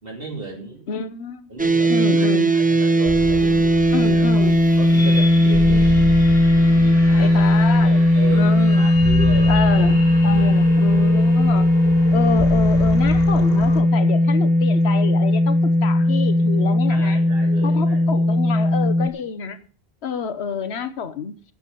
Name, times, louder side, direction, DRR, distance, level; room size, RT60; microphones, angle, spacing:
voice 1, 0.0-0.8 1.5-4.5 4.8-6.1 6.6-9.6 10.3-10.6 16.9-18.2, right 3 dB, 60° right, 3.0 m, -35 dB
voice 2, 0.9-1.5 1.9-2.6 3.9-4.6 7.2-7.9 8.3-8.9 9.5-11.7 12.1-17.2 17.6-19.7 20.0-21.4, left 5 dB, 85° left, 1.2 m, -28 dB
sound 1, 1.6-19.1, left 1 dB, 10° right, 0.5 m, -17 dB
sound 2, 3.0-13.8, left 3 dB, 65° left, 1.8 m, -29 dB
9.3 x 8.0 x 6.8 m
omnidirectional pair, 1.1 m